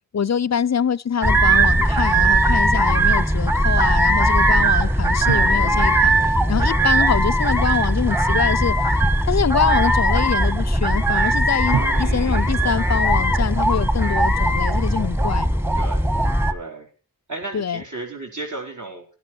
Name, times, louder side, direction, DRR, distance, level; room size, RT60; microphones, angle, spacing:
voice 1, 0.1-6.1 6.5-8.8 9.2-15.5 17.5-17.8, left 7 dB, 50° left, 0.5 m, -24 dB
sound 1, 1.2-16.5, right 1 dB, 5° right, 1.3 m, -19 dB
sound 2, 5.3-8.1 11.7-15.1, right 7 dB, 80° right, 1.0 m, -34 dB
voice 2, 12.0-12.5 15.8-16.1 16.5-16.9 17.3-19.0, right 2 dB, 55° right, 4.1 m, -34 dB
13.0 x 11.5 x 4.4 m
wide cardioid pair, 50°, 35 cm